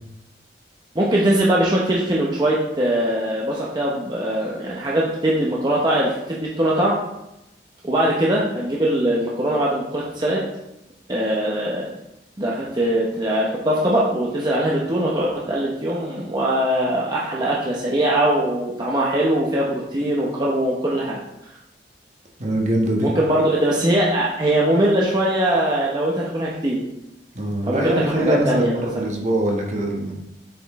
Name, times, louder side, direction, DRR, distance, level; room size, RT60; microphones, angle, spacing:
voice 1, 0.9-7.0 7.8-10.4 11.1-11.9 12.4-21.2 23.0-26.8 27.7-29.0, right 1 dB, 25° right, -5 dB, 0.8 m, -21 dB
voice 2, 22.4-23.1 27.3-30.1, right 1 dB, 40° right, 0 dB, 1.3 m, -22 dB
7.4 x 5.1 x 3.6 m, 0.89 s
head